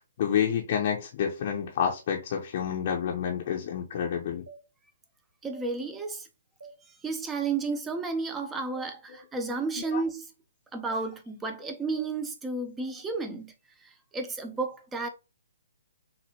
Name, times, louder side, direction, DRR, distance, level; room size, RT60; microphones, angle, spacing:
voice 1, 0.0-4.4 9.9-10.0, left 8 dB, 40° left, 0.7 m, -29 dB
sound 1, 4.5-4.6 5.5-5.7 6.6-6.8 7.7-7.8 8.7-8.9 9.8-10.0 10.9-11.0 12.0-12.1, right 4 dB, 70° right, 1.0 m, -46 dB
voice 2, 5.4-6.3 6.9-10.3 10.7-13.5 13.8-15.1, right 3 dB, 10° right, 0.7 m, -32 dB
6.3 x 2.5 x 2.8 m
figure-of-eight pair, 130°, 0 cm